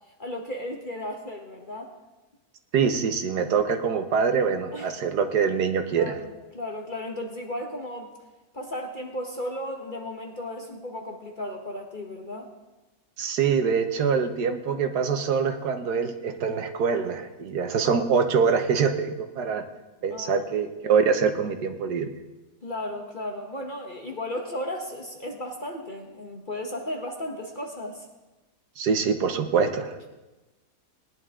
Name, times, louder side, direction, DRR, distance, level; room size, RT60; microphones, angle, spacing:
voice 1, 0.2-1.9 4.7-4.9 6.0-8.1 8.5-12.5 20.1-20.5 22.6-28.1, left 1 dB, 35° left, 1 dB, 1.3 m, -35 dB
voice 2, 2.7-6.1 13.2-19.6 20.0-22.1 28.8-29.9, right 6 dB, 85° right, 7 dB, 1.6 m, -24 dB
19.0 x 10.5 x 3.7 m, 1.1 s
omnidirectional pair, 1.7 m